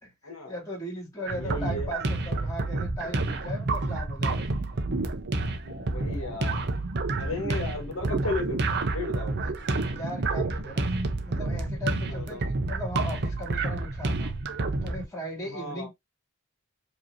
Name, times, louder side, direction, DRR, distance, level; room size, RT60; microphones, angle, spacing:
voice 1, 0.0-4.4 9.9-10.9 11.2-14.4 14.8-15.9, equal, 15° left, 2.5 m, -38 dB
voice 2, 1.3-1.9 5.6-6.6 7.2-8.6 8.9-9.3 12.1-12.4 15.5-15.9, left 2 dB, 75° left, 1.5 m, -34 dB
sound 1, 1.3-15.0, right 2 dB, 55° right, 0.7 m, -29 dB
4.9 x 2.9 x 2.7 m
head